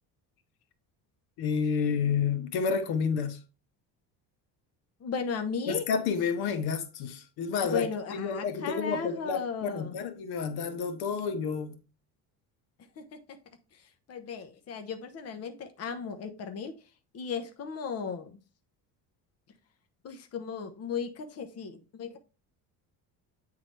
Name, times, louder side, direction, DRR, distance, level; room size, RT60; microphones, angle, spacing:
voice 1, 1.4-3.4 5.7-11.8, left 6 dB, 75° left, 1.1 m, -30 dB
voice 2, 5.0-5.9 7.7-9.9 13.0-13.4 13.7-16.8 17.1-18.4 20.0-22.2, left 5 dB, 40° left, 0.9 m, -36 dB
8.8 x 3.9 x 3.2 m
cardioid pair, 135°, 38 cm